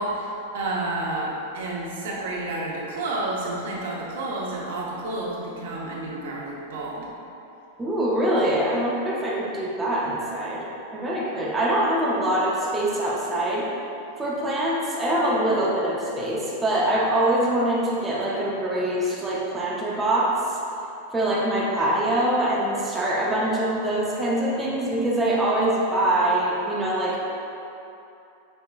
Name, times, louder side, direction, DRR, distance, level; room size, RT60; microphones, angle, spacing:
voice 1, 0.0-7.1, right 2 dB, 80° right, -4 dB, 0.9 m, -30 dB
voice 2, 7.8-10.6 10.9-13.7 14.2-20.4 21.1-27.3, right 1 dB, 10° right, -6 dB, 0.5 m, -24 dB
5.4 x 3.5 x 2.3 m, 2.8 s
supercardioid pair, 160°, 0 cm